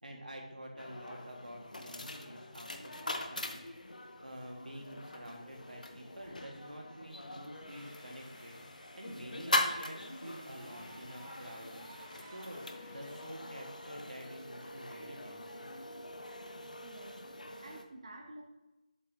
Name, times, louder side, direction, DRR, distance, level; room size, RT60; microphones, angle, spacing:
voice 1, 0.0-3.6 3.9-8.6 8.9-15.7, equal, 85° right, 0 dB, 1.8 m, -48 dB
sound 1, 0.8-17.8, left 2 dB, 70° left, 0.7 m, -41 dB
sound 2, 7.4-12.6, right 4 dB, 10° right, 0.5 m, -59 dB
sound 3, 7.7-13.4, left 2 dB, 30° left, 1.6 m, -59 dB
voice 2, 16.8-17.2 17.6-18.4, right 2 dB, 45° right, 1 dB, 0.8 m, -50 dB
7.5 x 4.4 x 3.6 m, 1.0 s
figure-of-eight pair, 165°, 4 cm